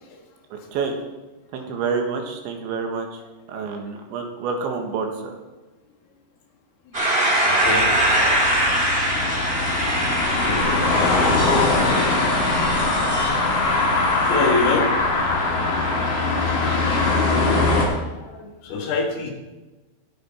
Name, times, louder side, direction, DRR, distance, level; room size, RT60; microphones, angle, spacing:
voice 1, 0.5-1.0 1.5-3.2 3.5-5.4, right 5 dB, 70° right, 3 dB, 3.4 m, -28 dB
sound 1, 6.9-14.8, right 1 dB, 15° right, 2.6 m, -24 dB
voice 2, 7.4-8.0 8.9-9.2 10.2-11.2 11.5-11.9 14.2-14.9 17.3-17.5 17.9-19.3, left 3 dB, 85° left, 1 dB, 4.7 m, -27 dB
sound 2, 7.6-17.9, left 3 dB, 50° left, 3.6 m, -21 dB
21.0 x 7.5 x 4.3 m, 1.1 s
omnidirectional pair, 5.8 m